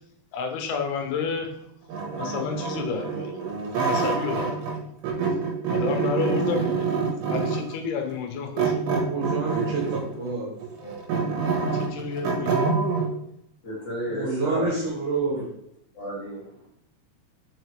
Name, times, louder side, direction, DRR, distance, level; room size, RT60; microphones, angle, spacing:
voice 1, 0.3-1.5 2.2-3.5 3.8-4.7 5.7-6.9 7.3-9.2 11.7-12.5, left 6 dB, 80° left, 4 dB, 2.7 m, -30 dB
sound 1, 1.9-4.8 5.0-7.7 8.6-10.1 10.6-13.1, right 5 dB, 85° right, 3.2 m, -26 dB
voice 2, 9.0-10.5 14.1-15.5, right 3 dB, 60° right, -3 dB, 2.4 m, -28 dB
voice 3, 10.8-11.3 13.6-14.7 15.3-15.4 15.9-16.7, equal, 40° left, -6 dB, 1.8 m, -34 dB
6.2 x 4.9 x 3.1 m, 0.74 s
omnidirectional pair, 4.5 m